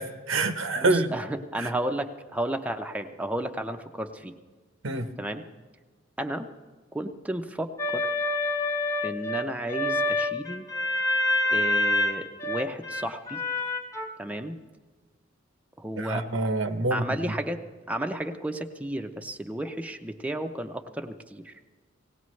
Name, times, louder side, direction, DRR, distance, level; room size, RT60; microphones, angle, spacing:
voice 1, 0.0-1.1 1.6-1.7 4.8-5.1 16.0-17.0, right 2 dB, 85° right, 9 dB, 0.9 m, -26 dB
voice 2, 0.8-4.3 5.2-5.4 6.2-6.5 6.9-8.1 9.0-10.7 11.5-13.4 14.2-14.6 15.8-16.2 16.9-17.6 17.9-21.5, right 1 dB, 5° right, 5 dB, 0.5 m, -33 dB
sound 1, 7.8-14.1, left 2 dB, 15° left, 1.0 m, -27 dB
18.5 x 17.5 x 3.2 m, 1.4 s
head